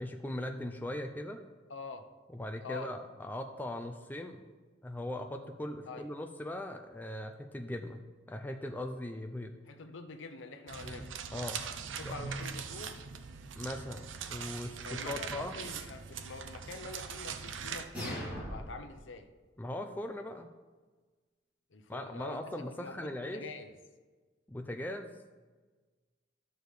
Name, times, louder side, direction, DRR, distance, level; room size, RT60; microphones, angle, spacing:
voice 1, 0.0-1.4 2.3-4.4 4.8-9.5 10.8-11.6 12.1-12.2 13.6-15.6 19.6-20.5 21.9-23.4 24.5-25.2, left 1 dB, 10° left, 5 dB, 0.4 m, -40 dB
voice 2, 1.7-2.0 2.6-2.9 5.9-6.0 9.7-11.1 12.0-13.0 14.8-19.3 21.7-23.7, left 3 dB, 80° left, 7 dB, 0.7 m, -46 dB
sound 1, 10.7-17.9, right 6 dB, 85° right, 0.6 m, -41 dB
sound 2, 17.9-18.9, equal, 10° right, 2.7 m, -39 dB
11.0 x 6.7 x 3.2 m, 1.3 s
head